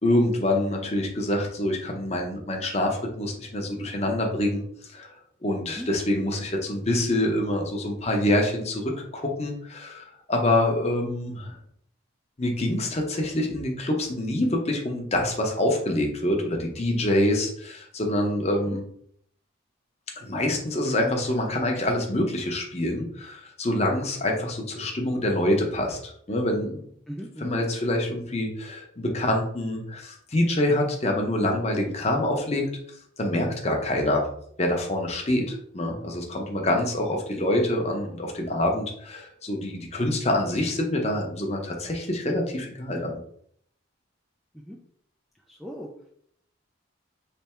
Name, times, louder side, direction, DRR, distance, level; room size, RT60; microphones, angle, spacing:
voice 1, 0.0-4.6 4.9-5.1 5.4-11.6 12.4-18.8 20.2-26.8 27.4-32.6 33.2-34.2 34.6-43.2, left 1 dB, 30° left, 1 dB, 0.7 m, -26 dB
voice 2, 27.1-27.5 44.7-44.8 45.5-45.9, equal, ahead, -1 dB, 0.3 m, -37 dB
3.4 x 2.6 x 4.3 m, 0.65 s
head